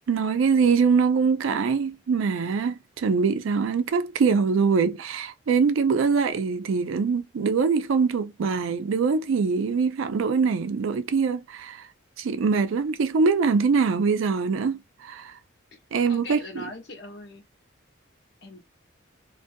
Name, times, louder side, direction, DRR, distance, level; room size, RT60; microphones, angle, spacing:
voice 1, 0.1-11.9 12.2-15.4 15.9-16.6, right 5 dB, 85° right, 0.4 m, -23 dB
voice 2, 16.1-17.4 18.4-18.7, left 2 dB, 55° left, 0.8 m, -40 dB
2.4 x 2.3 x 2.5 m
head